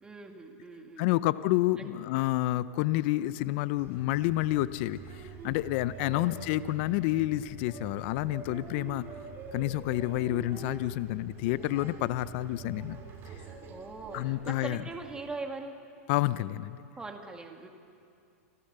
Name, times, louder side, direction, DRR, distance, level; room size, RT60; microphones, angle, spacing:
voice 1, 0.0-1.2 1.8-1.9 6.0-6.4 13.6-15.8 17.0-17.7, right 3 dB, 10° right, 3 dB, 1.9 m, -42 dB
voice 2, 1.0-9.1 9.5-13.0 14.1-14.8 16.1-16.8, left 16 dB, 50° left, 16 dB, 0.6 m, -29 dB
sound 1, 3.8-15.4, right 5 dB, 30° right, 2.8 m, -45 dB
27.0 x 15.0 x 6.8 m, 2.5 s
hypercardioid pair, 130°, 8 cm